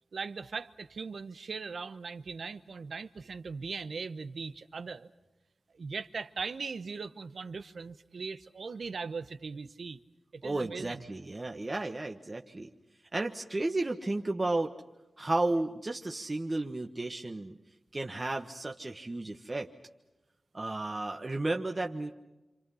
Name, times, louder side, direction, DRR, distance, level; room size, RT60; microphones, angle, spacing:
voice 1, 0.1-5.1 5.7-10.0 10.3-11.0, right 4 dB, 75° right, 12 dB, 1.0 m, -39 dB
voice 2, 10.4-12.7 13.1-14.7 15.2-17.6 17.9-19.7 20.5-22.1, right 2 dB, 35° right, 2 dB, 1.4 m, -33 dB
28.5 x 26.5 x 5.7 m, 1.0 s
cardioid pair, 60°, 0 cm